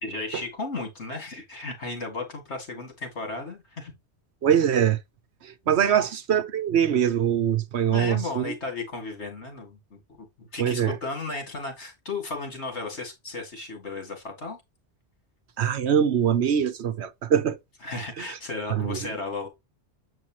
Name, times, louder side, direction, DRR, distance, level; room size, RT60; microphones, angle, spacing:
voice 1, 0.0-3.9 5.8-6.0 7.9-14.6 17.8-19.5, left 3 dB, 75° left, 2.6 m, -35 dB
voice 2, 4.4-5.0 5.7-8.5 10.6-10.9 15.6-17.6 18.2-18.3 18.7-19.0, right 9 dB, 70° right, 1.1 m, -23 dB
8.0 x 4.7 x 3.0 m
omnidirectional pair, 1.2 m